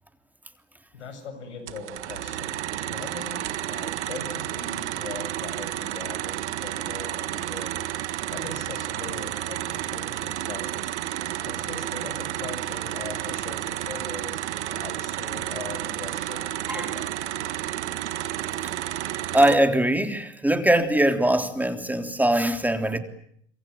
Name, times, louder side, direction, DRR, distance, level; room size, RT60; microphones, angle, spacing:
voice 1, 0.9-3.4 3.7-7.8 8.3-17.1, left 5 dB, 80° left, 10 dB, 7.2 m, -40 dB
sound 1, 1.7-19.6, right 13 dB, 75° right, 1.8 m, -31 dB
voice 2, 19.3-23.0, right 1 dB, 5° right, 7 dB, 3.5 m, -22 dB
26.5 x 24.5 x 9.1 m, 0.68 s
hypercardioid pair, 80°, 34 cm